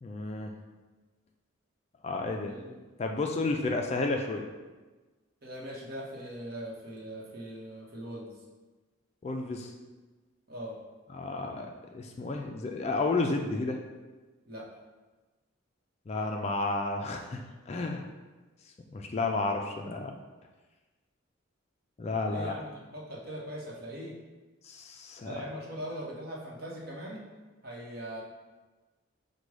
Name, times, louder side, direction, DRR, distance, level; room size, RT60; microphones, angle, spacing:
voice 1, 0.0-0.5 2.0-2.6 3.0-4.5 9.2-9.7 11.1-13.8 16.1-18.1 18.9-20.1 22.0-22.5 24.6-25.4, left 3 dB, 30° left, 2 dB, 0.3 m, -32 dB
voice 2, 5.4-8.3 10.5-10.7 14.5-14.6 22.3-24.1 25.2-27.2 27.6-28.2, equal, 50° right, -3 dB, 1.0 m, -40 dB
5.1 x 2.2 x 4.7 m, 1.2 s
head